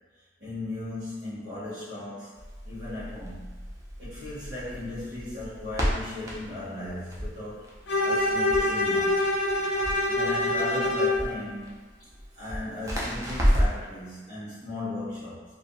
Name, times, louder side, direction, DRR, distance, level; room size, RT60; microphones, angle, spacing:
voice 1, 0.4-2.3 2.6-3.5 4.0-7.7 8.0-9.3 10.1-11.9 12.3-15.4, left 2 dB, 65° right, -12 dB, 1.0 m, -36 dB
Crackle, 2.3-13.9, equal, 15° right, 0.4 m, -32 dB
Bowed string instrument, 7.9-11.3, left 1 dB, 70° left, 0.4 m, -25 dB
2.4 x 2.1 x 2.6 m, 1.4 s
head